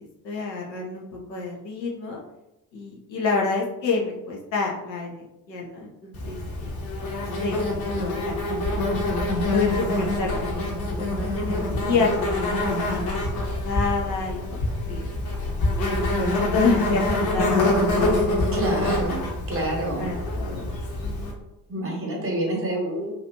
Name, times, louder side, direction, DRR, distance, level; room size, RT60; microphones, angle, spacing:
voice 1, 0.2-2.2 2.7-6.7 7.0-8.8 9.5-15.1 15.8-17.7 17.9-19.1 20.0-20.7 21.0-21.3, left 4 dB, 85° left, -3 dB, 0.6 m, -29 dB
Insect, 6.1-21.3, left 2 dB, 45° left, 0.8 m, -26 dB
voice 2, 18.5-20.1 21.7-23.1, right 1 dB, 25° right, -1 dB, 0.9 m, -28 dB
2.8 x 2.3 x 2.7 m, 0.92 s
figure-of-eight pair, 45°, 50 cm